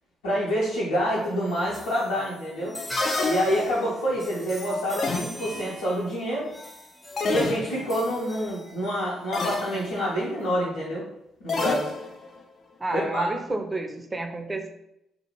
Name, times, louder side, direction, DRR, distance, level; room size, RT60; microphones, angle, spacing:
voice 1, 0.2-2.8 3.2-6.5 7.2-11.1 11.4-11.9 12.9-13.3, equal, 80° left, -8 dB, 0.7 m, -27 dB
sound 1, 1.1-10.6, left 1 dB, 20° left, 0.7 m, -40 dB
sound 2, 3.0-3.9 5.0-5.7 7.2-8.0 9.3-9.9 11.5-12.4, left 3 dB, 50° left, 0.4 m, -29 dB
voice 2, 12.8-14.7, right 2 dB, 25° right, 5 dB, 0.5 m, -30 dB
2.5 x 2.5 x 3.0 m, 0.80 s
hypercardioid pair, 45°, 0 cm